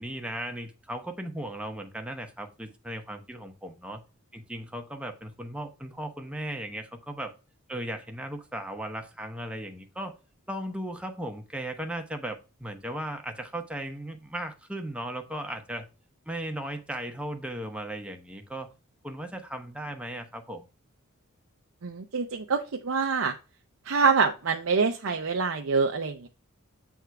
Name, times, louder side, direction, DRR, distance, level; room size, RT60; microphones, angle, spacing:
voice 1, 0.0-4.0 4.3-7.3 7.7-10.2 10.5-15.9 16.3-18.7 19.0-20.7, right 1 dB, 5° right, 1.0 m, -36 dB
voice 2, 21.8-23.3 23.9-26.3, right 5 dB, 70° right, 0.6 m, -25 dB
7.9 x 3.6 x 4.6 m
head